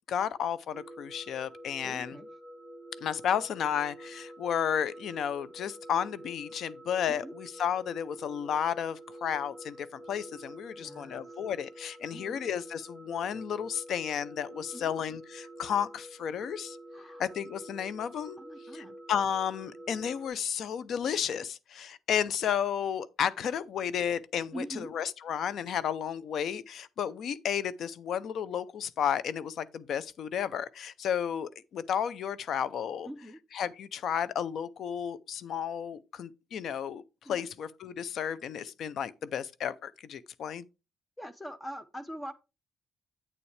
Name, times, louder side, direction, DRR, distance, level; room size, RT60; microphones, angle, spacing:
voice 1, 0.1-2.2 3.0-16.8 17.2-18.4 18.7-33.1 33.5-40.6, left 8 dB, 65° left, 0.6 m, -32 dB
sound 1, 0.7-20.3, right 1 dB, 45° left, 4.7 m, -48 dB
voice 2, 1.8-2.3 7.1-7.3 10.8-11.2 12.1-12.4 14.7-14.9 16.9-17.2 18.4-18.9 24.5-24.9 33.0-33.4 37.2-37.4 41.2-42.3, equal, 10° left, 0.8 m, -43 dB
8.4 x 7.1 x 3.3 m
cardioid pair, 90°, 0 cm